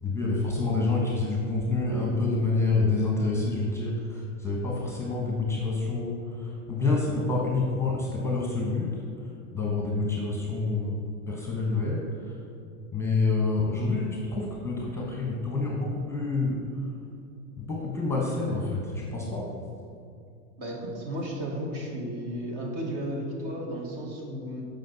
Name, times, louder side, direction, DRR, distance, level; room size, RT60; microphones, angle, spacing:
voice 1, 0.0-8.9 9.5-11.0 11.3-12.3 12.9-16.6 17.6-19.5, left 3 dB, 5° left, -3 dB, 1.0 m, -27 dB
voice 2, 20.6-24.6, equal, 45° right, -1 dB, 1.7 m, -34 dB
7.5 x 5.2 x 4.0 m, 2.5 s
hypercardioid pair, 115°, 43 cm